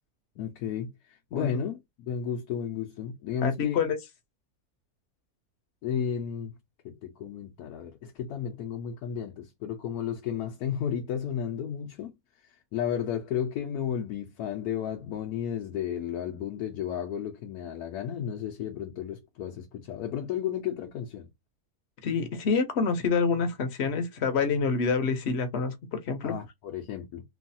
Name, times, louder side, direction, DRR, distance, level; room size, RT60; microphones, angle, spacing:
voice 1, 0.4-3.8 5.8-6.5 6.8-12.1 12.7-21.3 26.2-27.2, left 8 dB, 85° left, 1.2 m, -33 dB
voice 2, 3.4-4.0 22.0-26.3, left 5 dB, 55° left, 0.9 m, -27 dB
3.1 x 2.3 x 2.6 m
omnidirectional pair, 1.6 m